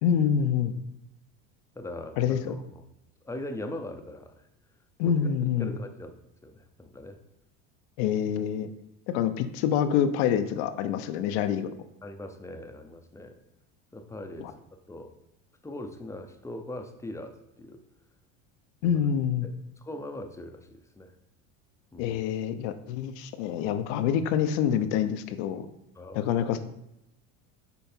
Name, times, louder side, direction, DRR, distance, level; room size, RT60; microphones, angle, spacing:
voice 1, 0.0-0.7 2.2-2.5 5.0-5.8 8.0-8.7 9.1-11.7 14.4-14.5 18.8-19.5 22.0-25.7 26.1-26.6, left 8 dB, 75° left, 11 dB, 0.7 m, -26 dB
voice 2, 1.8-2.2 2.5-2.8 3.2-4.5 5.0-5.1 5.6-6.1 6.4-7.2 12.0-13.4 13.9-14.6 14.9-15.1 15.6-17.8 18.8-19.0 19.4-21.1 21.9-22.1 26.0-26.4, left 1 dB, 10° left, 6 dB, 0.6 m, -40 dB
5.4 x 4.6 x 4.4 m, 0.84 s
supercardioid pair, 105°, 34 cm